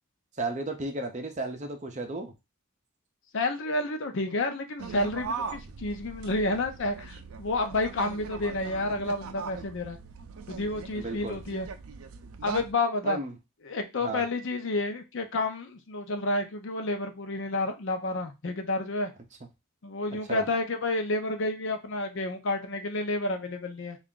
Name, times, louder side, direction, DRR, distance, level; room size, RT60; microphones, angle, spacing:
voice 1, 0.4-2.3 10.9-11.4 13.0-13.3 14.0-14.2 20.3-20.5, right 2 dB, 35° right, 5 dB, 0.6 m, -33 dB
voice 2, 3.3-10.0 10.5-11.7 12.4-13.2 13.6-19.1 19.8-24.0, left 2 dB, 60° left, 6 dB, 0.6 m, -30 dB
sound 1, 4.8-12.7, right 5 dB, 75° right, 0.4 m, -40 dB
3.3 x 2.5 x 3.7 m, 0.24 s
head